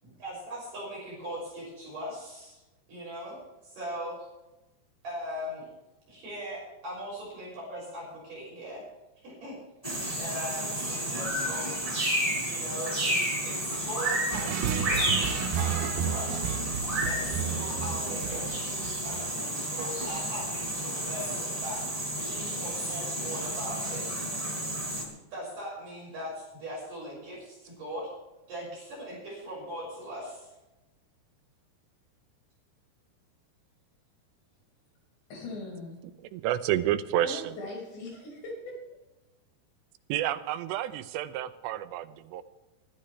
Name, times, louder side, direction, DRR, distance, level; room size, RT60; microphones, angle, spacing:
voice 1, 0.0-2.6 2.9-3.4 3.6-4.3 5.0-5.7 6.1-8.9 9.2-9.6 10.2-11.8 12.5-16.6 17.1-24.1 25.3-28.1 28.5-30.5, equal, 50° right, -5 dB, 7.3 m, -40 dB
sound 1, 9.8-25.0, right 1 dB, 10° right, 3.6 m, -31 dB
sound 2, 14.3-19.3, right 9 dB, 75° right, 2.7 m, -32 dB
voice 2, 35.3-36.0 37.2-38.8, left 2 dB, 75° left, -1 dB, 7.7 m, -40 dB
voice 3, 36.3-37.4 40.1-42.4, right 12 dB, 90° right, 12 dB, 3.0 m, -29 dB
23.5 x 13.0 x 3.3 m, 1.0 s
omnidirectional pair, 4.9 m